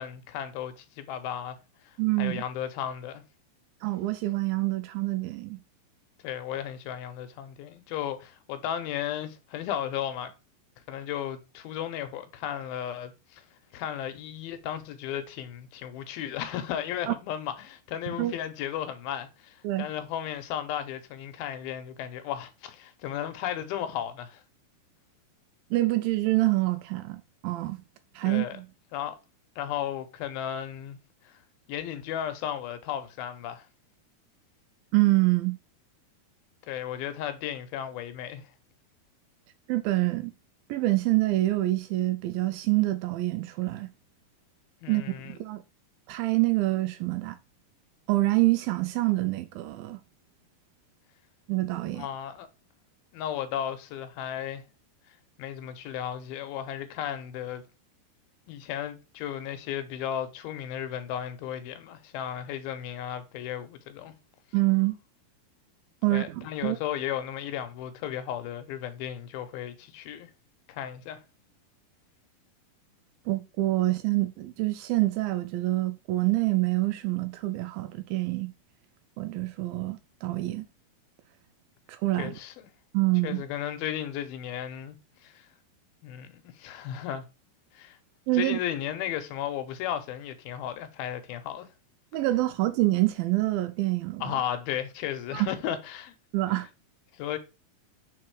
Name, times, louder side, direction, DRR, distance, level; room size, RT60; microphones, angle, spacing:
voice 1, 0.0-1.6 1.8-3.2 6.2-10.3 10.9-13.4 13.7-24.4 28.2-28.6 28.9-29.2 29.6-31.0 31.2-31.4 31.7-33.7 36.7-38.5 44.8-45.4 51.9-52.5 53.1-54.6 55.1-57.6 58.5-64.1 66.1-70.3 70.7-71.2 82.2-82.7 83.2-85.0 85.2-85.5 86.0-87.2 87.7-88.0 88.3-91.7 94.2-96.1 97.1-97.4, left 10 dB, 80° left, 2.5 m, -35 dB
voice 2, 2.0-2.4 3.8-5.6 17.1-17.2 18.2-18.3 19.6-19.9 25.7-27.8 28.2-28.7 34.9-35.6 39.7-40.3 40.7-43.9 44.9-45.6 46.1-47.4 48.1-50.0 51.5-52.1 64.5-65.0 66.0-66.8 73.3-78.5 79.2-80.6 81.9-82.3 82.9-83.4 88.3-88.6 92.1-94.4 95.3-95.5 96.3-96.7, right 19 dB, 80° right, 2.2 m, -26 dB
4.7 x 4.4 x 4.6 m
omnidirectional pair, 4.4 m